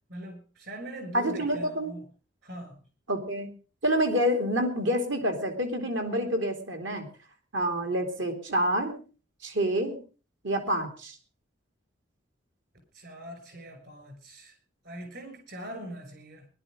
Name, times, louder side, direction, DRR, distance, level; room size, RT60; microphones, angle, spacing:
voice 1, 0.1-2.0 2.4-2.8 12.9-14.5 14.8-16.5, right 1 dB, 55° right, 6 dB, 6.1 m, -42 dB
voice 2, 1.1-1.9 3.1-3.5 3.8-7.1 7.5-9.0 9.4-10.0 10.4-11.2, equal, 70° right, 6 dB, 2.9 m, -27 dB
19.0 x 11.5 x 5.1 m, 0.37 s
head